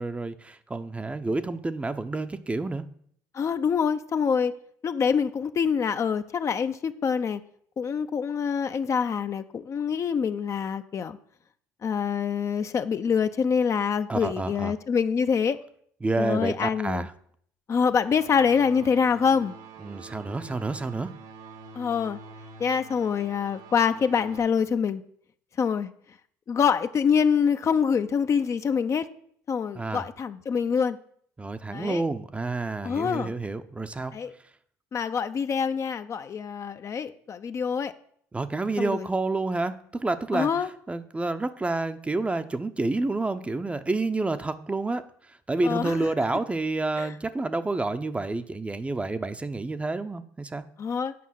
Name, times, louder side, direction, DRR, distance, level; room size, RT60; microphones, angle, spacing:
voice 1, 0.0-2.9 14.1-14.7 16.0-17.1 19.8-21.1 29.7-30.0 31.4-34.1 38.3-50.6, right 2 dB, 15° right, 10 dB, 0.7 m, -29 dB
voice 2, 3.3-4.5 4.8-7.4 7.8-11.2 11.8-15.6 16.2-17.0 17.7-19.5 21.7-22.2 22.6-25.0 25.6-25.9 26.5-29.1 29.5-31.0 31.7-32.0 32.8-33.3 34.1-34.3 34.9-37.9 38.8-39.1 40.3-40.7 45.6-45.9 47.0-47.1 50.8-51.1, left 6 dB, 40° left, 10 dB, 0.6 m, -25 dB
sound 1, 17.9-24.4, right 4 dB, 75° right, 1.5 m, -46 dB
8.5 x 5.4 x 7.5 m, 0.63 s
supercardioid pair, 80°, 7 cm